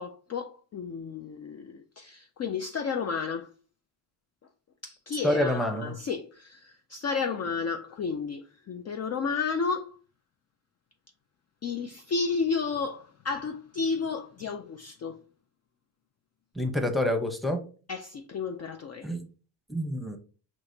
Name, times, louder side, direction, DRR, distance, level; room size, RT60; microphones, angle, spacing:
voice 1, 0.0-3.5 4.8-10.0 11.6-15.2 17.9-19.1, left 5 dB, 40° left, 0.4 m, -32 dB
voice 2, 5.2-5.9 16.5-17.6 19.0-19.2 19.7-20.2, left 1 dB, ahead, 0.8 m, -27 dB
6.1 x 2.9 x 2.7 m
cardioid pair, 120°, 45 cm